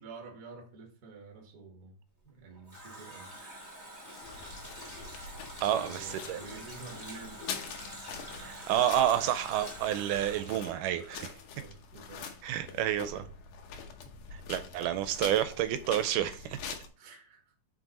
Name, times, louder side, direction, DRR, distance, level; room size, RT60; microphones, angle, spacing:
voice 1, 0.0-2.0 2.2-3.3 5.7-7.4 9.1-9.2 11.5-12.3 12.6-12.8 13.1-13.3 17.0-17.5, right 3 dB, 45° right, 1.3 m, -48 dB
Water tap faucet, 2.2-11.8 12.1-12.2, equal, 10° left, 1.7 m, -46 dB
sound 1, 4.2-16.9, left 6 dB, 75° left, 2.4 m, -45 dB
voice 2, 5.6-6.4 8.4-11.3 12.4-13.2 14.3-16.6, right 11 dB, 80° right, 2.0 m, -29 dB
6.1 x 5.2 x 4.1 m
omnidirectional pair, 3.8 m